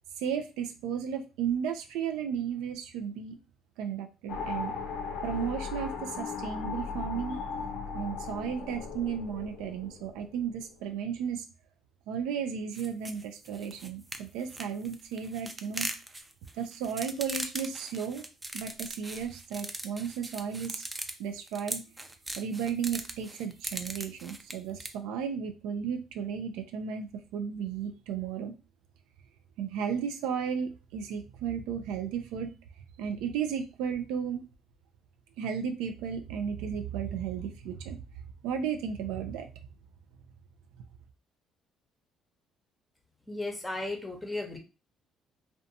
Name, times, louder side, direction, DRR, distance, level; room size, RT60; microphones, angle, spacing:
voice 1, 0.2-3.4 3.8-4.7 5.2-7.4 7.9-11.5 12.1-15.9 16.5-18.3 18.5-20.8 21.2-21.8 22.4-28.5 29.6-32.5 33.0-34.4 35.4-38.0 38.4-39.5, right 7 dB, 85° right, 6 dB, 0.3 m, -34 dB
sound 1, 4.3-10.7, left 5 dB, 80° left, 0.5 m, -37 dB
sound 2, 12.7-24.9, right 2 dB, 20° right, 0.4 m, -39 dB
voice 2, 43.3-44.6, left 2 dB, 15° left, 4 dB, 0.7 m, -35 dB
2.5 x 2.2 x 2.6 m, 0.29 s
supercardioid pair, 75°, 0 cm